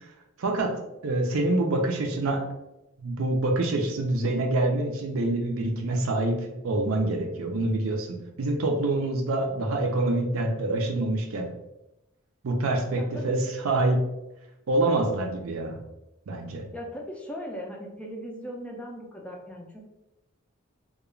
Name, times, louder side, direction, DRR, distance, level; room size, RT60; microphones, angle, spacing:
voice 1, 0.4-0.7 1.0-2.4 3.0-6.4 6.6-11.5 12.4-13.4 13.6-14.0 14.7-15.8 16.3-16.7, right 2 dB, 75° right, 3 dB, 0.5 m, -26 dB
voice 2, 13.0-13.4 16.7-19.8, equal, 5° left, -1 dB, 0.3 m, -38 dB
2.4 x 2.2 x 3.0 m, 0.93 s
head